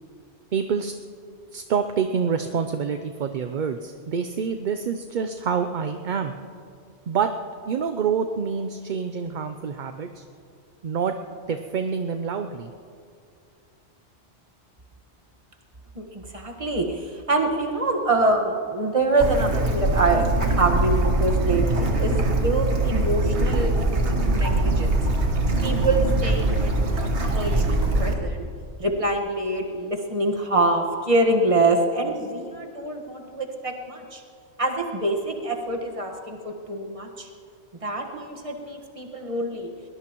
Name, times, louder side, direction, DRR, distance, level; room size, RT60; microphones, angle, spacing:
voice 1, 0.5-0.9 1.5-6.3 7.1-7.3 7.7-10.2 10.8-11.2 11.5-12.7, right 6 dB, 50° right, 7 dB, 0.6 m, -27 dB
voice 2, 15.9-25.0 25.6-28.5 28.8-34.2 34.6-37.3 37.8-39.7, right 2 dB, 30° right, 2 dB, 1.5 m, -25 dB
Bird / Stream, 19.2-28.1, right 2 dB, 75° right, 1.7 m, -22 dB
22.0 x 19.5 x 3.0 m, 2.4 s
omnidirectional pair, 1.2 m